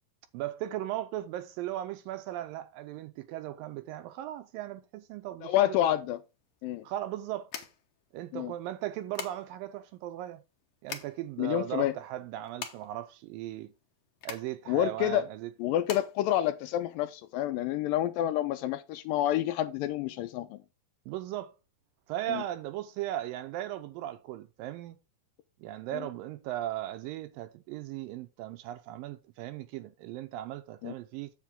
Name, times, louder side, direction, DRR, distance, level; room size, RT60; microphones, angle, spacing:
voice 1, 0.3-5.8 6.8-7.5 8.1-10.4 10.8-13.7 14.2-15.5 21.1-21.5 22.1-25.0 25.6-31.3, right 13 dB, 80° right, 2.2 m, -37 dB
voice 2, 5.4-6.2 6.6-6.9 8.3-8.5 11.4-11.9 14.7-15.2 15.6-20.6 22.3-22.4 25.9-26.0 30.8-30.9, left 12 dB, 80° left, 2.1 m, -28 dB
sound 1, 6.1-17.2, left 8 dB, 65° left, 1.6 m, -46 dB
7.5 x 7.4 x 3.7 m
omnidirectional pair, 4.3 m